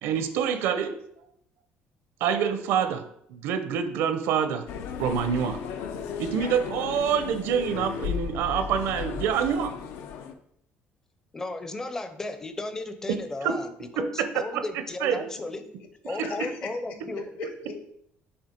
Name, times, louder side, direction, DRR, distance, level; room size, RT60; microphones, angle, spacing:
voice 1, 0.0-1.0 2.2-3.0 3.3-4.6 5.0-5.6 6.2-9.7 13.4-13.5 14.5-14.6 15.0-15.3 16.1-16.2, right 8 dB, 75° right, 9 dB, 0.7 m, -26 dB
sound 1, 4.7-10.3, left 7 dB, 85° left, 0.6 m, -35 dB
voice 2, 11.3-15.6 16.0-17.3, left 2 dB, 15° left, 9 dB, 0.5 m, -34 dB
voice 3, 16.2-17.7, left 4 dB, 60° left, 6 dB, 1.2 m, -38 dB
7.2 x 3.2 x 5.1 m, 0.71 s
cardioid pair, 165°, 4 cm